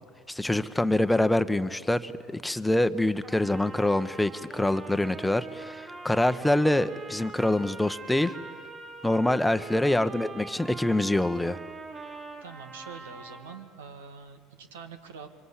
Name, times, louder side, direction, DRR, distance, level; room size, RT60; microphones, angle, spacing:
voice 1, 0.3-8.3 9.0-11.6, left 1 dB, 5° left, 12 dB, 1.0 m, -25 dB
Trumpet, 3.2-13.6, right 3 dB, 35° right, 5.1 m, -43 dB
voice 2, 9.9-10.2 12.4-15.3, right 6 dB, 85° right, 8 dB, 1.8 m, -45 dB
24.5 x 24.5 x 8.3 m, 2.1 s
hypercardioid pair, 75°, 0 cm